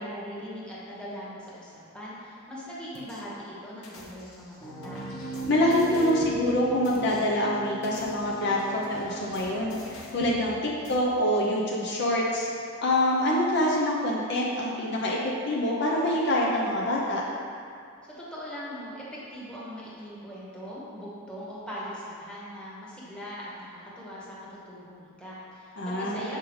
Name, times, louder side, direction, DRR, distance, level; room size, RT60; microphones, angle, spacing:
voice 1, 0.0-5.0 18.0-26.4, equal, 5° left, -8 dB, 1.2 m, -40 dB
sound 1, 2.9-3.2 3.8-6.4 6.8-7.2 7.7-10.4 10.8-10.9, left 2 dB, 85° left, 0.9 m, -47 dB
Piano, 4.6-12.5, right 3 dB, 25° left, 1.1 m, -38 dB
voice 2, 5.5-12.5 12.8-17.2 25.8-26.3, left 1 dB, 55° left, -3 dB, 0.6 m, -26 dB
6.7 x 4.9 x 3.1 m, 2.4 s
head